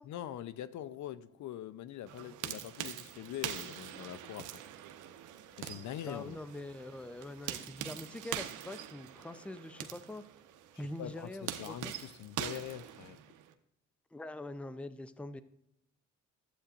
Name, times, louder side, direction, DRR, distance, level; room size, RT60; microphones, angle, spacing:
voice 1, 0.1-4.5 5.6-6.4 11.0-13.2, left 11 dB, 70° left, 0.6 m, -43 dB
sound 1, 2.1-13.5, right 11 dB, 90° right, 0.8 m, -44 dB
voice 2, 6.1-10.2 10.8-11.9 14.1-15.4, left 1 dB, 5° left, 0.5 m, -44 dB
12.0 x 8.1 x 2.5 m
cardioid pair, 90°, 30 cm